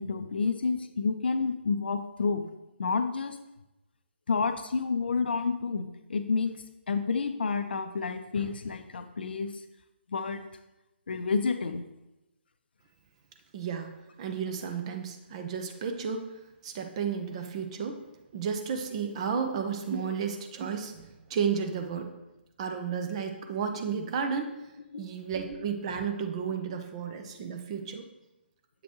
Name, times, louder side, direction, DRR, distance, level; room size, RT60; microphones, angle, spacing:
voice 1, 0.0-2.4 2.8-3.4 4.3-6.5 6.9-9.5 10.1-10.4 11.1-11.9, left 4 dB, 55° left, 9 dB, 0.5 m, -29 dB
voice 2, 13.5-13.9 14.2-16.3 16.6-18.0 18.3-22.1 22.6-24.5 25.0-28.0, right 6 dB, 30° right, 5 dB, 0.6 m, -32 dB
7.6 x 5.1 x 3.0 m, 0.95 s
figure-of-eight pair, 135°, 6 cm